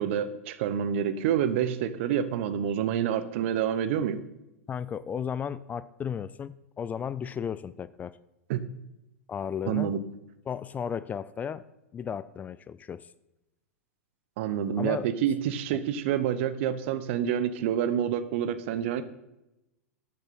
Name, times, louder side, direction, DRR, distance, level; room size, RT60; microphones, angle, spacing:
voice 1, 0.0-4.2 8.5-8.6 9.7-10.0 14.4-19.0, right 9 dB, 55° right, 12 dB, 0.9 m, -28 dB
voice 2, 4.7-8.2 9.3-9.9 10.5-11.6 11.9-13.1 14.8-15.1, left 7 dB, 20° left, 17 dB, 0.4 m, -34 dB
12.0 x 8.6 x 4.3 m, 0.93 s
hypercardioid pair, 100°, 8 cm